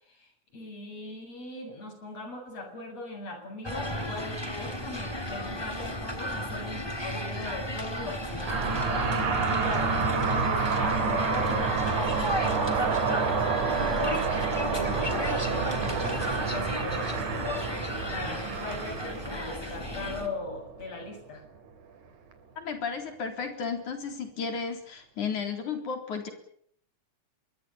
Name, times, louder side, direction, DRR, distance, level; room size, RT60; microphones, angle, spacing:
voice 1, 0.2-17.7 18.1-21.4, left 2 dB, 60° left, 5 dB, 8.7 m, -39 dB
sound 1, 3.6-20.3, equal, 10° left, 3.1 m, -34 dB
sound 2, 8.5-21.1, right 5 dB, 85° right, 4.3 m, -29 dB
voice 2, 22.6-26.3, left 5 dB, 80° left, 6 dB, 5.3 m, -33 dB
25.5 x 23.0 x 7.0 m, 0.64 s
omnidirectional pair, 3.4 m